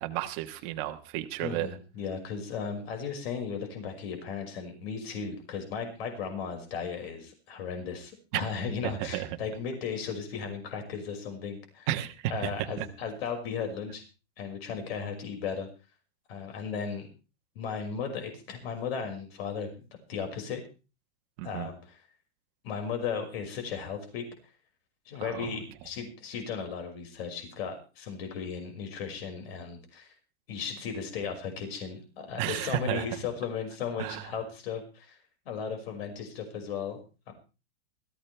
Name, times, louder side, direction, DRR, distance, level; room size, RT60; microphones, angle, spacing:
voice 1, 0.0-1.7 8.3-8.4 9.0-9.3 11.9-12.5 12.8-12.9 21.4-21.7 25.2-25.6 32.4-33.2 34.0-34.2, right 13 dB, 35° right, 5 dB, 1.3 m, -32 dB
voice 2, 1.4-11.9 12.3-14.0 14.4-15.7 16.3-17.1 17.6-20.6 21.4-22.0 22.6-24.2 25.1-30.1 30.5-35.2 35.5-37.3, left 6 dB, 60° left, 4 dB, 5.7 m, -36 dB
20.5 x 15.0 x 3.4 m, 0.33 s
supercardioid pair, 175°, 35 cm